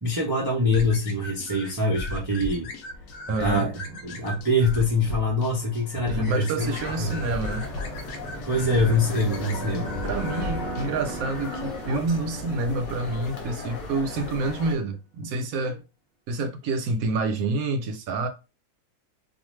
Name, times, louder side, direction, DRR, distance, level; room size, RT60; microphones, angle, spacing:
voice 1, 0.0-2.7 3.4-3.7 4.0-7.3 8.5-9.9, left 1 dB, 35° right, 0.3 m, -24 dB
sound 1, 0.7-10.9, left 2 dB, 80° left, 1.1 m, -36 dB
voice 2, 3.3-4.0 6.1-7.7 9.7-15.8 16.3-18.3, right 3 dB, 70° right, 1.0 m, -28 dB
sound 2, 3.7-14.1, right 1 dB, 5° right, 0.9 m, -39 dB
sound 3, 6.6-14.8, left 3 dB, 55° left, 1.0 m, -37 dB
2.5 x 2.4 x 3.1 m
omnidirectional pair, 1.6 m